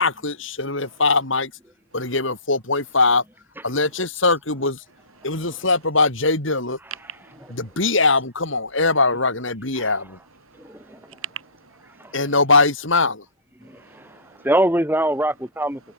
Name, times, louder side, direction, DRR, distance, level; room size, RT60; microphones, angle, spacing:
voice 1, 0.0-1.5 1.9-3.2 3.6-4.8 5.2-6.8 7.5-10.2 12.1-13.2, left 3 dB, 65° left, 5.2 m, -21 dB
voice 2, 5.2-5.7 6.9-7.8 10.4-12.2 13.6-14.5 15.8-15.9, right 10 dB, 80° right, 7.2 m, -43 dB
voice 3, 10.6-11.0 14.4-15.9, right 1 dB, 10° right, 4.2 m, -22 dB
head